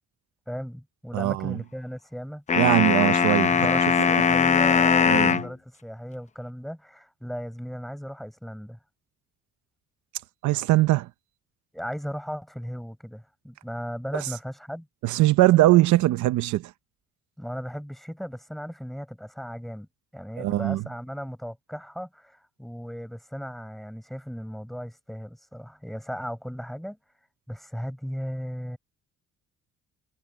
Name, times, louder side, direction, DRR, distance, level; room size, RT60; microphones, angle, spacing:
voice 1, 0.5-2.4 3.5-8.8 11.7-14.9 17.4-19.9 20.1-27.0 27.5-28.8, equal, ahead, 6.9 m, -36 dB
voice 2, 1.1-1.6 2.5-3.5 5.1-5.4 10.4-11.1 15.0-16.6 20.4-20.8, right 16 dB, 80° right, 0.8 m, -21 dB
sound 1, 2.5-5.5, left 6 dB, 25° left, 0.6 m, -20 dB
cardioid pair, 140°, 29 cm